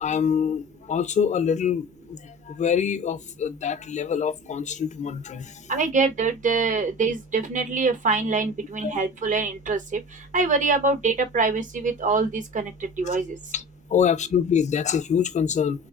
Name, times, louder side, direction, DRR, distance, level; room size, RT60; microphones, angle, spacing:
voice 1, 0.0-5.6 8.8-9.0 13.0-13.2 13.5-13.6 13.9-15.9, left 7 dB, 55° left, 0.5 m, -25 dB
voice 2, 5.7-10.0 10.3-12.7 13.0-13.2, right 4 dB, 60° right, 1.0 m, -24 dB
3.4 x 3.2 x 2.3 m
wide cardioid pair, 100°, 15 cm